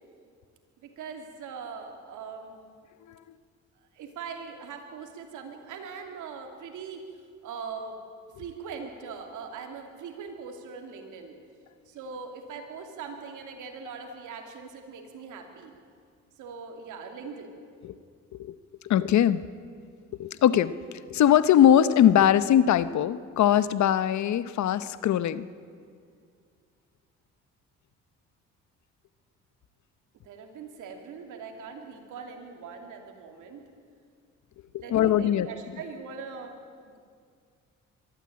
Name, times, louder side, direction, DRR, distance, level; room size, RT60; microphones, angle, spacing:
voice 1, 0.8-2.6 3.9-7.0 7.4-8.0 8.4-11.3 11.9-15.7 16.4-17.5 30.2-33.6 34.8-36.6, right 5 dB, 85° right, 3 dB, 2.9 m, -41 dB
voice 2, 18.8-19.4 20.2-20.8 21.1-25.5 34.7-35.5, left 10 dB, 70° left, 15 dB, 0.9 m, -21 dB
22.5 x 13.5 x 8.7 m, 2.1 s
cardioid pair, 90°, 30 cm